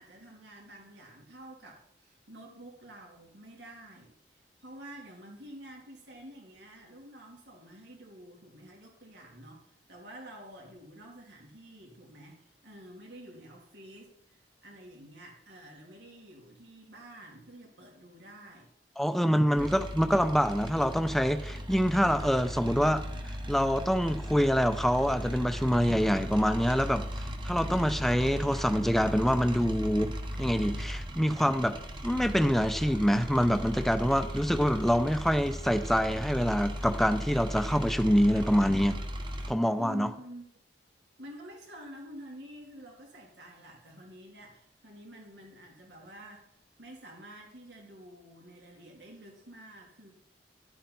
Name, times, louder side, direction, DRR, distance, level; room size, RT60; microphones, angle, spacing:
voice 1, 0.0-9.6 9.9-18.7 19.3-19.9 39.8-40.4 41.2-46.4 46.8-50.1, right 1 dB, 85° right, -1 dB, 3.2 m, -49 dB
voice 2, 19.0-23.0 23.5-31.8 32.0-39.0 39.5-40.1, equal, ahead, 9 dB, 0.6 m, -26 dB
sound 1, 19.6-39.5, equal, 25° right, 1.1 m, -37 dB
12.0 x 8.5 x 4.0 m, 0.72 s
head